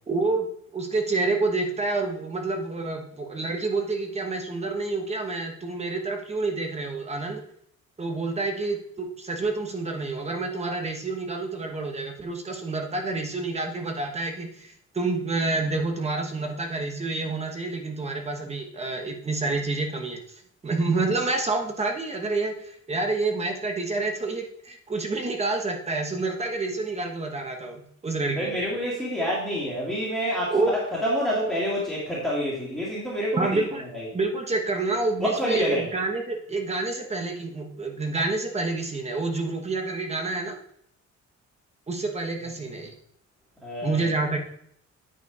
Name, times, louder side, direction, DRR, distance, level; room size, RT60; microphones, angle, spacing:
voice 1, 0.1-0.5 0.7-7.4 8.0-20.2 20.6-28.6 30.5-30.7 33.3-33.8 34.1-40.6 41.9-42.9 43.8-44.4, right 3 dB, 20° right, 3 dB, 1.2 m, -28 dB
voice 2, 28.4-33.6 33.9-34.0 35.3-35.8 43.6-44.1, equal, ahead, -7 dB, 2.1 m, -28 dB
9.0 x 5.0 x 4.9 m, 0.68 s
wide cardioid pair, 175°, 29 cm